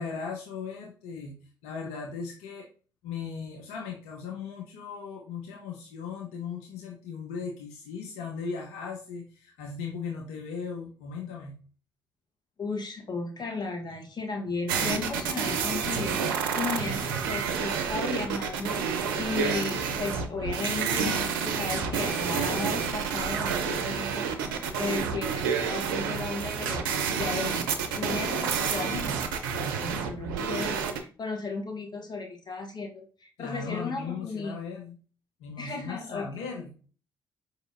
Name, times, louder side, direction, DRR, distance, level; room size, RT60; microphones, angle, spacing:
voice 1, 0.0-1.4 1.6-2.7 3.0-11.6 33.4-35.0 35.4-36.8, left 5 dB, 75° left, 0 dB, 0.6 m, -37 dB
voice 2, 12.6-26.8 27.2-34.5 35.6-36.3, left 3 dB, 40° left, 2 dB, 1.1 m, -35 dB
sound 1, 14.7-31.0, right 6 dB, 80° right, 0.4 m, -29 dB
4.8 x 2.7 x 2.5 m, 0.38 s
hypercardioid pair, 45°, 11 cm